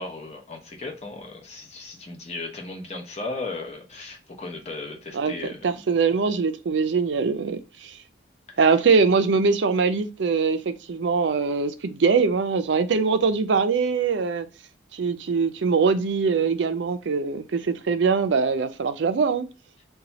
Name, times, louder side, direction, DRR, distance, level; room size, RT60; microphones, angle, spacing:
voice 1, 0.0-5.8, left 3 dB, 35° left, 0.8 m, -36 dB
voice 2, 5.6-8.0 8.6-14.5 14.9-19.5, right 5 dB, 70° right, 0.4 m, -22 dB
2.7 x 2.3 x 4.0 m
head